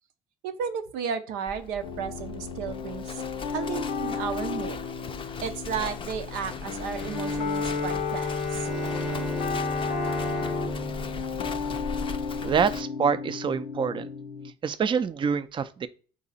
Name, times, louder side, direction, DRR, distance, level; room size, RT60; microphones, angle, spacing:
voice 1, 0.4-3.1 3.5-4.8 5.4-8.7, right 7 dB, 85° right, 0.5 m, -33 dB
Livestock farm animals working animals, 1.5-12.8, left 5 dB, 30° left, 0.4 m, -39 dB
sound 1, 1.8-14.5, left 6 dB, 80° left, 0.6 m, -33 dB
Bowed string instrument, 7.0-12.4, right 2 dB, ahead, 0.8 m, -35 dB
voice 2, 12.4-14.1 14.6-15.9, right 6 dB, 30° right, 0.4 m, -26 dB
4.0 x 2.7 x 4.0 m
supercardioid pair, 65°, 16 cm